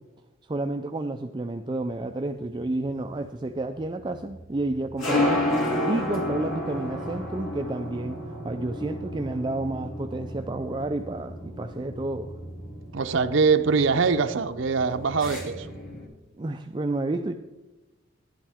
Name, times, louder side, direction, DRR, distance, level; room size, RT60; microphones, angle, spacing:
voice 1, 0.5-5.5 5.9-8.2 8.4-12.3 16.4-17.3, right 2 dB, 25° right, 0.4 m, -30 dB
sound 1, 2.0-16.1, left 1 dB, 85° left, 2.6 m, -32 dB
voice 2, 12.9-15.7, right 5 dB, 70° right, 0.6 m, -23 dB
12.5 x 11.0 x 3.6 m
head